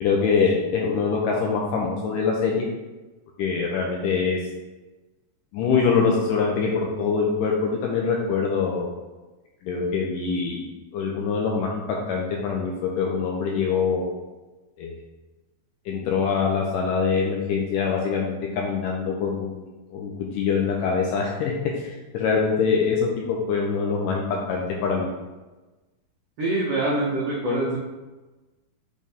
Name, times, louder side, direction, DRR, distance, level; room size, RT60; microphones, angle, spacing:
voice 1, 0.0-2.7 3.4-4.4 5.5-8.9 9.6-10.6 10.9-14.1 14.8-15.0 15.9-25.1, left 5 dB, 85° left, -1 dB, 1.9 m, -24 dB
voice 2, 26.4-27.8, right 1 dB, 90° right, -6 dB, 1.3 m, -24 dB
6.1 x 4.5 x 3.5 m, 1.1 s
omnidirectional pair, 4.4 m